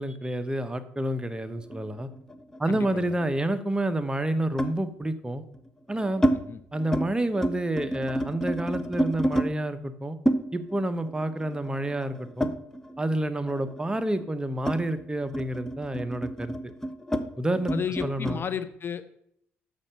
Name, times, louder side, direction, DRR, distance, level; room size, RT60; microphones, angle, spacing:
voice 1, 0.0-2.1 2.6-5.4 5.9-6.2 6.7-10.2 10.5-12.5 13.0-16.5 17.4-17.7 18.0-18.4, right 1 dB, 15° right, 10 dB, 1.0 m, -29 dB
sound 1, 1.7-3.3 4.6-4.8 5.6-6.4 6.7-7.1 7.3-9.5 10.3-13.1 13.4-18.4, right 1 dB, 10° left, 0.9 m, -30 dB
voice 2, 2.7-3.2 6.3-6.6 17.7-19.2, left 7 dB, 45° left, 13 dB, 0.8 m, -33 dB
6.6 x 6.4 x 7.6 m, 0.72 s
supercardioid pair, 65°, 5 cm